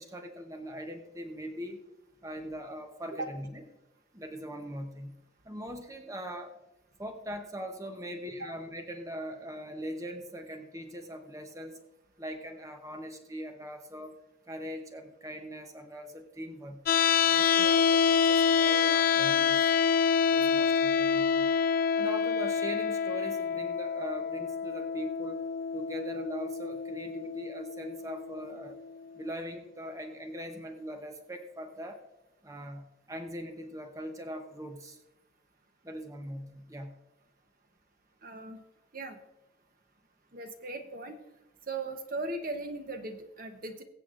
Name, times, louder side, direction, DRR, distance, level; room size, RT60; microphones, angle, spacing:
voice 1, 0.0-1.8 2.2-3.6 4.1-5.1 5.4-6.6 7.0-11.8 12.2-14.1 14.5-16.8 17.2-19.8 20.3-21.5 22.0-25.4 25.7-28.8 29.1-32.0 32.4-35.0 35.8-36.9, equal, 15° right, 4 dB, 0.8 m, -41 dB
sound 1, 16.9-28.9, left 6 dB, 50° left, 0.3 m, -27 dB
voice 2, 38.2-38.6 38.9-39.2 40.3-41.2 41.7-43.8, right 2 dB, 45° right, 6 dB, 0.9 m, -38 dB
22.0 x 7.9 x 2.5 m, 0.96 s
head